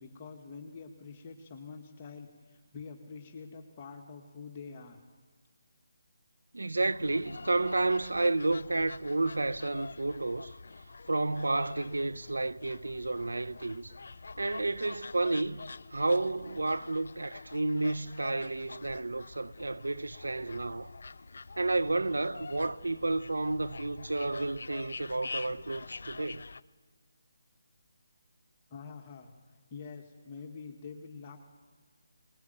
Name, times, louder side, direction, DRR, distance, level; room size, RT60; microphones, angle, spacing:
voice 1, 0.0-5.0 28.7-29.3 29.7-31.4, left 5 dB, 30° left, 1.9 m, -46 dB
voice 2, 6.5-10.5 11.1-13.9 14.4-20.9 21.6-26.5, right 2 dB, 90° right, 0.9 m, -31 dB
sound 1, 6.9-26.6, left 3 dB, 65° left, 0.6 m, -46 dB
23.0 x 20.5 x 9.3 m
figure-of-eight pair, 160°, 0 cm